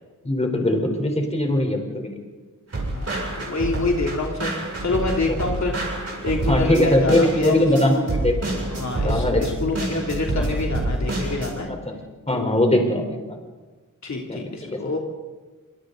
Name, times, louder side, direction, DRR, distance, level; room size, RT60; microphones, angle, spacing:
voice 1, 0.2-2.2 6.5-8.6 9.0-9.7 10.3-10.5 11.7-12.0 12.3-13.4 14.3-14.8, left 1 dB, 20° left, 2 dB, 4.0 m, -21 dB
sound 1, 2.7-11.5, right 1 dB, 50° right, 6.8 m, -28 dB
voice 2, 3.3-4.5 4.8-5.7 6.2-8.0 8.7-11.7 12.3-12.6 14.0-15.0, left 3 dB, 60° left, 0 dB, 3.0 m, -26 dB
26.5 x 25.5 x 4.0 m, 1.3 s
wide cardioid pair, 110°, 32 cm